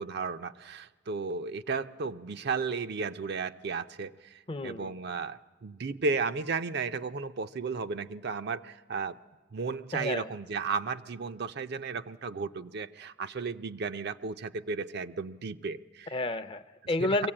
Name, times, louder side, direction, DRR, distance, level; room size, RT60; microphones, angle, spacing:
voice 1, 0.0-9.2 9.5-16.1 17.0-17.2, right 4 dB, 60° right, 10 dB, 0.5 m, -34 dB
voice 2, 4.5-4.9 9.9-10.3 16.1-17.3, left 2 dB, 30° left, 12 dB, 0.6 m, -31 dB
23.0 x 16.0 x 8.7 m, 1.4 s
head